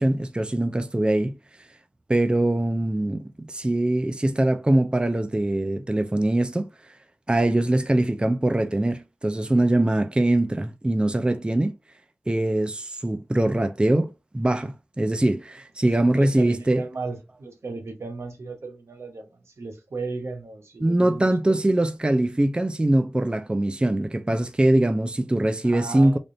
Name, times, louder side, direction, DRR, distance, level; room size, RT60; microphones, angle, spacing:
voice 1, 0.0-1.4 2.1-6.7 7.3-11.7 12.3-16.8 20.8-26.2, right 1 dB, 20° right, 0.5 m, -22 dB
voice 2, 15.8-21.6 25.6-26.2, right 3 dB, 80° right, 1.0 m, -36 dB
3.4 x 2.5 x 3.9 m
cardioid pair, 40°, 5 cm